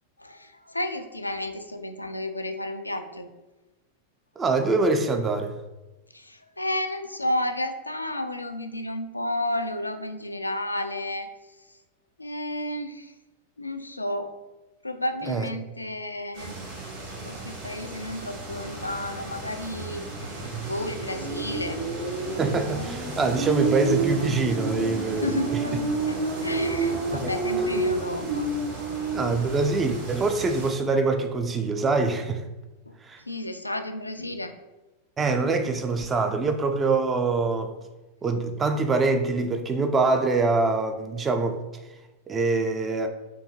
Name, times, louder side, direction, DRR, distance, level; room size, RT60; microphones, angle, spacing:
voice 1, 0.2-3.3 6.1-11.3 12.2-13.1 13.6-14.3 14.8-16.6 17.2-20.3 20.6-21.8 25.2-28.5 32.9-33.0 33.2-34.5, left 1 dB, 85° left, 8 dB, 0.3 m, -32 dB
voice 2, 4.4-5.6 15.3-15.5 22.4-25.6 27.1-27.3 29.1-32.4 33.0-33.2 35.2-37.7 38.2-41.6 42.3-43.1, right 3 dB, 20° right, 6 dB, 0.3 m, -24 dB
sound 1, 16.4-30.7, right 3 dB, 55° right, 1.3 m, -30 dB
4.4 x 2.7 x 2.8 m, 1.1 s
figure-of-eight pair, 90°, 0 cm